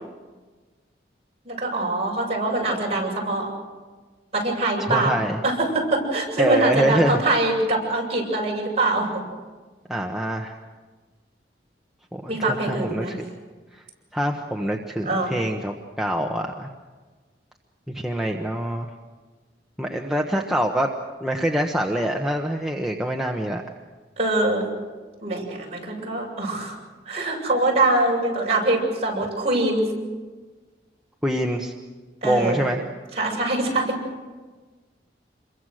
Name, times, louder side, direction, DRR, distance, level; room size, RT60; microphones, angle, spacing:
voice 1, 1.4-3.5 4.3-9.2 12.3-13.1 15.1-15.3 24.2-24.6 25.2-26.8 27.1-29.9 32.2-32.7 33.2-33.9, right 2 dB, 35° right, -2 dB, 7.4 m, -23 dB
voice 2, 4.9-5.4 6.4-7.2 9.9-10.6 12.1-13.2 13.7-13.8 14.1-16.7 17.9-18.9 19.8-20.9 21.2-23.6 31.2-31.7 32.2-32.8, equal, ahead, 0 dB, 1.1 m, -25 dB
27.5 x 23.0 x 6.5 m, 1.3 s
head